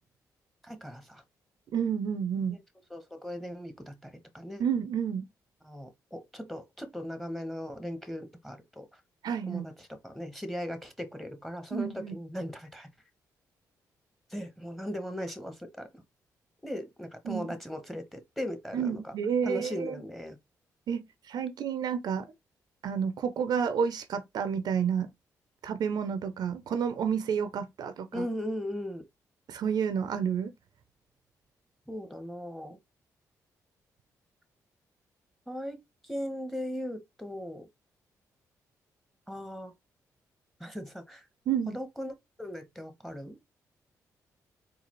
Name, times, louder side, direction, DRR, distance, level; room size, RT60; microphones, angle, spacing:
voice 1, 0.6-1.2 2.5-2.6 2.9-4.6 5.6-8.9 9.5-12.9 14.3-15.9 16.6-19.1 19.4-20.4 28.1-29.1 31.9-32.8 35.5-35.8 36.1-37.7 39.3-39.7 40.6-41.2 41.7-42.1 42.4-43.4, equal, ahead, 1.1 m, -38 dB
voice 2, 1.7-2.6 4.6-5.3 9.2-9.7 11.7-12.1 17.2-17.5 18.7-20.0 20.9-22.3 22.8-25.1 25.6-28.3 29.5-30.5 41.5-41.8, right 7 dB, 70° right, 0.5 m, -30 dB
4.0 x 2.4 x 3.0 m
supercardioid pair, 55°, 7 cm